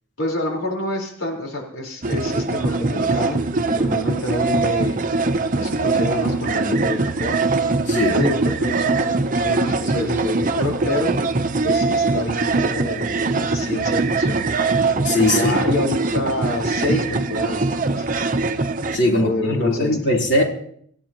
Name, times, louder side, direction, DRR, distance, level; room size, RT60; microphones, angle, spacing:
voice 1, 0.2-5.0 5.6-7.4 8.1-11.2 11.6-14.5 15.2-18.1 19.1-20.0, left 1 dB, 90° left, 0 dB, 4.3 m, -27 dB
sound 1, 2.0-19.0, right 3 dB, 40° right, 0.7 m, -22 dB
voice 2, 15.0-15.6 18.9-20.4, left 1 dB, 55° left, -1 dB, 3.7 m, -20 dB
27.0 x 15.0 x 3.0 m, 0.65 s
head